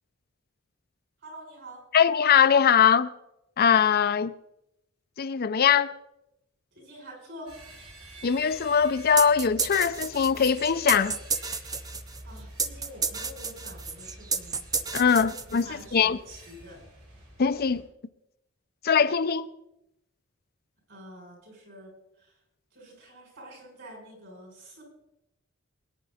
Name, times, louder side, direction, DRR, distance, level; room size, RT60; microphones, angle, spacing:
voice 1, 1.2-1.9 6.8-7.6 12.2-14.6 15.1-16.8 20.9-21.9 22.2-22.3 22.7-24.8, equal, 60° right, 7.0 m, -47 dB
voice 2, 1.9-3.1 3.6-4.3 5.2-5.9 8.2-11.2 14.9-16.2 17.4-17.8 18.8-19.5, left 7 dB, 50° left, 0.5 m, -22 dB
sound 1, 7.5-17.8, right 1 dB, 90° right, 7.3 m, -48 dB
sound 2, 9.2-15.9, right 5 dB, 20° right, 0.7 m, -31 dB
23.0 x 9.8 x 4.2 m
head